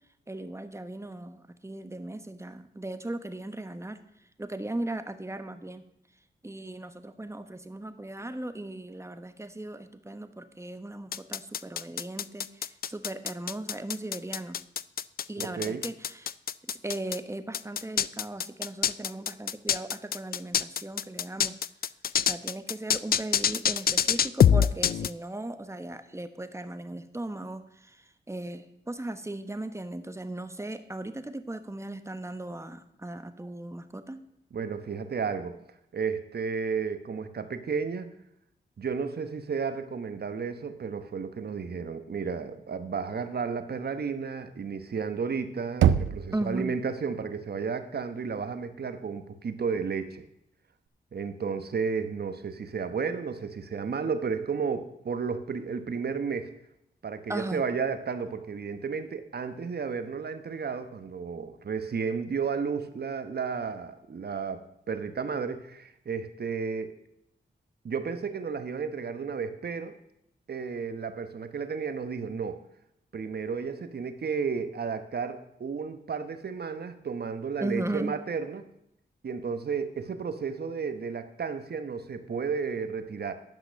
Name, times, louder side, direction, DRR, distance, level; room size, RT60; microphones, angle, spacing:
voice 1, 0.3-4.0 4.4-5.8 6.4-14.6 15.3-16.3 16.7-21.5 22.3-28.0 28.3-34.2 46.3-46.8 57.3-57.6 77.6-78.2, right 1 dB, 15° right, 9 dB, 1.1 m, -37 dB
sound 1, 11.1-17.2 17.5-25.1, left 8 dB, 55° left, 0.4 m, -25 dB
voice 2, 15.4-15.8 34.5-35.5 35.9-38.1 38.8-50.2 51.1-56.5 57.0-66.9 67.8-69.9 70.5-72.6 73.1-78.6 79.2-83.3, right 5 dB, 60° right, 10 dB, 1.1 m, -33 dB
Knock, 45.8-46.7, right 9 dB, 90° right, 0.4 m, -24 dB
10.5 x 5.9 x 6.4 m, 0.78 s
cardioid pair, 50°, 19 cm